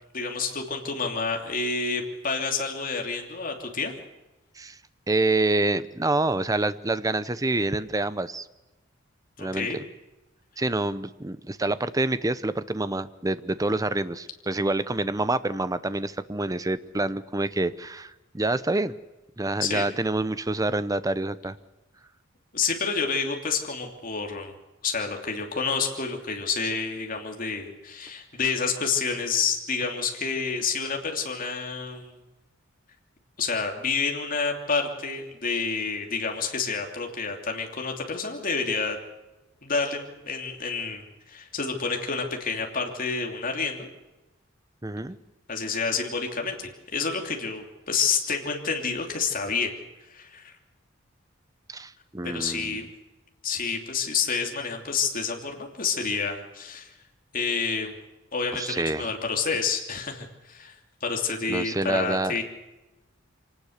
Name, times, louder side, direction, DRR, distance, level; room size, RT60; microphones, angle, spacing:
voice 1, 0.1-3.9 9.4-9.8 19.6-19.9 22.5-24.5 24.8-32.2 33.4-39.0 39.6-43.9 45.5-49.7 50.1-50.5 52.2-52.9 53.4-56.9 57.3-57.9 58.3-60.7 61.0-62.4, left 5 dB, 45° left, 2 dB, 3.0 m, -29 dB
voice 2, 5.1-8.5 9.4-9.8 10.6-18.9 19.4-21.6 44.8-45.2 51.7-52.8 58.5-59.1 61.5-62.3, right 2 dB, 15° right, 14 dB, 0.7 m, -27 dB
25.0 x 19.0 x 6.6 m, 1.1 s
head